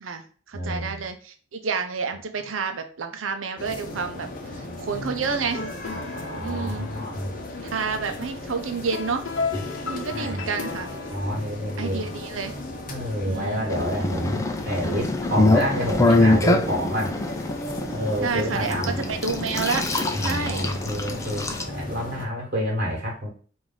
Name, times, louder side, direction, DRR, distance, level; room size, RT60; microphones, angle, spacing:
voice 1, 0.0-4.3 4.6-5.6 6.4-6.9 7.7-9.3 9.8-10.9 11.8-12.5 13.2-13.6 18.2-19.9 20.2-20.7, right 5 dB, 80° right, 6 dB, 0.6 m, -29 dB
voice 2, 0.5-1.1 4.9-5.5 5.9-7.3 10.1-10.5 11.1-12.1 12.9-17.2 17.9-18.9 20.1-23.3, equal, 55° right, -2 dB, 1.4 m, -29 dB
sound 1, 3.6-22.3, left 2 dB, 45° left, 0.8 m, -37 dB
sound 2, 5.2-11.3, left 4 dB, 80° left, 0.8 m, -35 dB
sound 3, 13.7-21.6, left 2 dB, 15° left, 0.5 m, -24 dB
4.7 x 2.6 x 3.9 m, 0.41 s
head